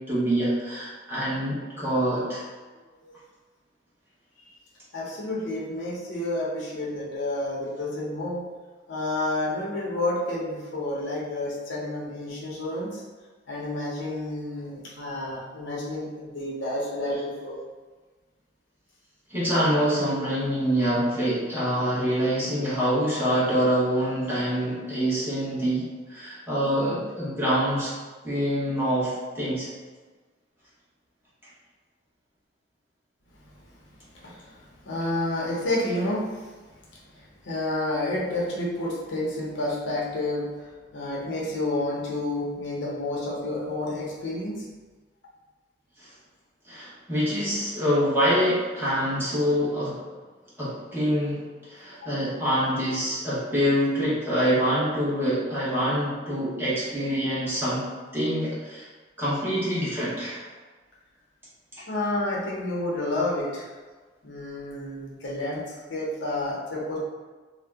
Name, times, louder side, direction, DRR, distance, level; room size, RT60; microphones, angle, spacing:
voice 1, 0.0-2.4 19.3-27.9 28.2-29.7 46.0-46.1 46.7-50.0 50.6-57.9 58.1-58.9 59.2-60.4, equal, 10° right, -10 dB, 1.0 m, -25 dB
voice 2, 4.9-8.4 8.9-13.0 13.5-17.6 33.4-33.5 34.1-36.6 36.9-44.7 52.0-52.1 61.9-63.7 64.2-65.6 65.9-67.0, left 1 dB, 70° left, -4 dB, 0.7 m, -30 dB
2.7 x 2.1 x 3.4 m, 1.3 s
head